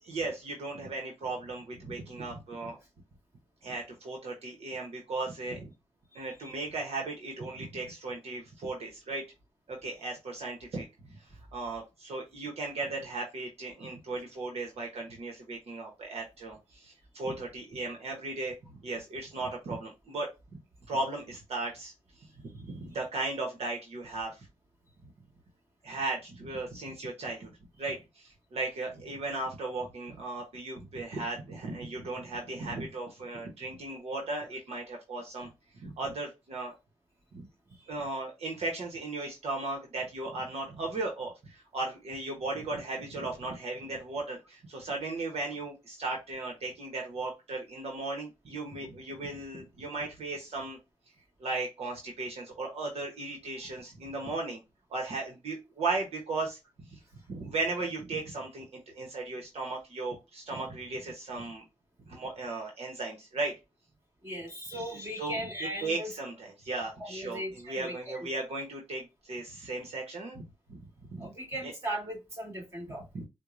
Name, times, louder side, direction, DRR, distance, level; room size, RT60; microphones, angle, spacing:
voice 1, 0.0-2.8 3.6-5.7 6.1-9.2 9.7-18.5 18.8-20.3 20.9-21.9 22.4-24.5 25.0-25.1 25.8-35.5 35.8-36.7 37.3-37.5 37.9-50.8 51.4-54.6 54.9-57.0 57.3-61.6 62.1-63.5 64.7-65.4 65.8-70.4 70.7-70.8 71.1-71.3 71.6-71.7 73.1-73.3, right 2 dB, 65° right, 0.9 m, -36 dB
voice 2, 64.2-66.1 67.0-68.0 71.2-73.0, equal, 25° right, 1.9 m, -38 dB
4.5 x 2.1 x 2.5 m
wide cardioid pair, 100°, 11 cm